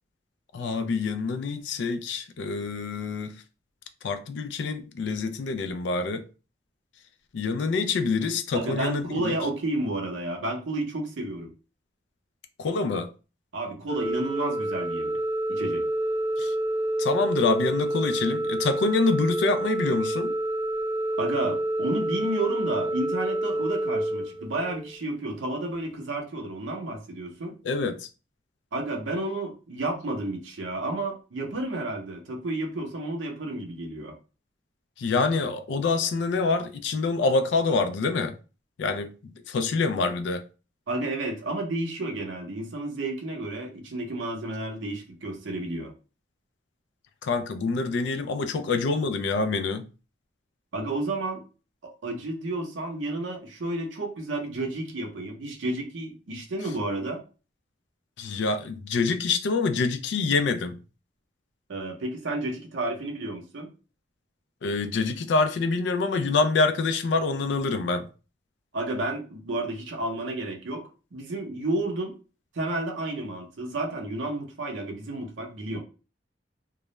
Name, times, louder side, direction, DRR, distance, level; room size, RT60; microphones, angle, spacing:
voice 1, 0.5-3.3 4.0-6.3 7.3-9.3 12.6-13.1 16.4-16.5 17.0-20.3 27.6-28.1 35.0-38.3 38.8-40.4 47.2-49.9 58.2-60.8 64.6-68.1, left 4 dB, 70° left, 0.3 m, -26 dB
voice 2, 8.5-11.5 13.5-15.2 15.5-15.8 21.2-27.6 28.7-34.1 40.9-45.9 50.7-51.4 52.0-57.2 61.7-63.7 68.7-70.8 71.1-72.1 72.5-75.8, right 2 dB, 85° right, 0.6 m, -31 dB
Organ, 13.9-25.0, right 1 dB, 25° right, 0.6 m, -28 dB
2.3 x 2.0 x 3.0 m
head